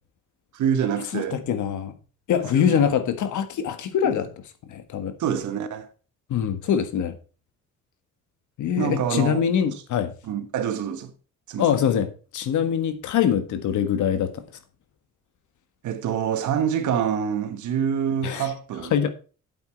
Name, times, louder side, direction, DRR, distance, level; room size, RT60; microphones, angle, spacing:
voice 1, 0.5-1.4 2.5-2.9 4.0-4.2 5.2-5.9 8.8-9.7 10.2-11.1 11.5-11.7 15.8-18.9, right 8 dB, 80° right, 1.6 m, -26 dB
voice 2, 1.1-1.9 2.3-4.3 4.7-5.1 6.3-7.1 8.6-10.1 11.6-14.4 18.2-18.5 18.9-19.1, left 8 dB, 75° left, 1.6 m, -23 dB
8.5 x 8.2 x 4.5 m
cardioid pair, 90°, 30 cm